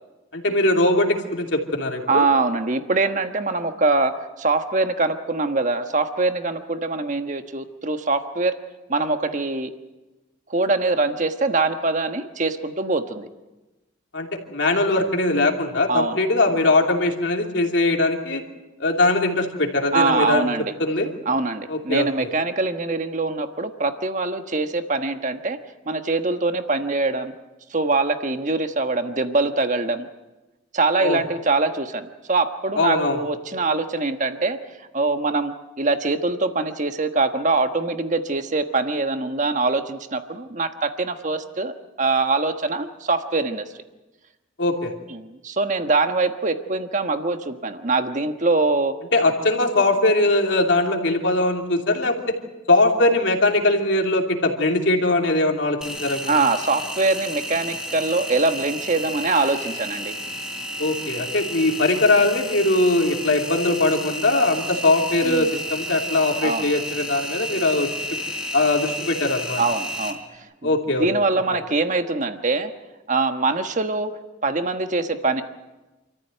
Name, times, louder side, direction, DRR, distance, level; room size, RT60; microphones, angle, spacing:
voice 1, 0.3-2.3 14.1-18.4 18.8-20.5 20.8-21.1 21.7-22.3 31.0-31.2 32.8-33.2 44.6-44.9 49.1-52.1 52.7-56.4 60.8-68.2 68.5-69.6 70.6-71.1, left 2 dB, 60° left, 2 dB, 2.9 m, -21 dB
voice 2, 2.1-8.6 8.9-9.7 10.5-13.3 15.9-16.2 19.9-20.7 21.3-25.6 25.8-27.3 27.7-30.1 30.7-34.6 34.9-43.7 45.1-48.9 56.3-60.2 65.2-65.5 66.4-66.7 69.6-72.7 73.1-74.1 74.4-75.4, right 3 dB, 40° right, 7 dB, 1.3 m, -23 dB
Engine, 55.8-70.1, left 1 dB, 5° right, 3.4 m, -32 dB
27.5 x 14.5 x 9.1 m, 1.1 s
head